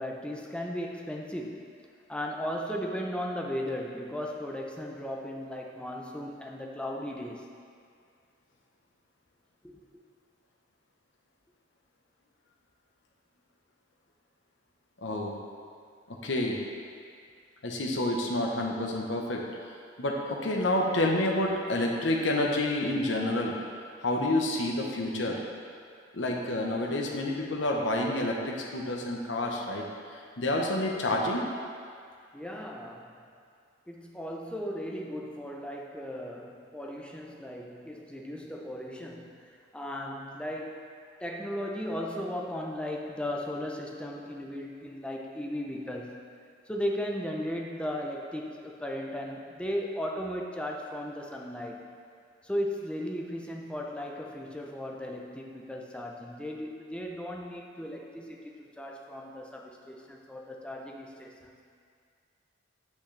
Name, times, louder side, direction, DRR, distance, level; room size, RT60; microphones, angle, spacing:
voice 1, 0.0-1.7 2.1-7.5 9.6-9.8 32.3-33.1 33.9-40.9 41.2-46.2 46.7-51.9 52.4-61.6, equal, 5° left, 0 dB, 0.6 m, -36 dB
voice 2, 15.0-15.4 16.1-16.6 17.6-19.4 20.0-23.6 24.0-25.4 26.1-29.8 30.1-31.5, left 1 dB, 70° left, 0 dB, 0.9 m, -29 dB
8.3 x 6.3 x 3.3 m, 2.2 s
head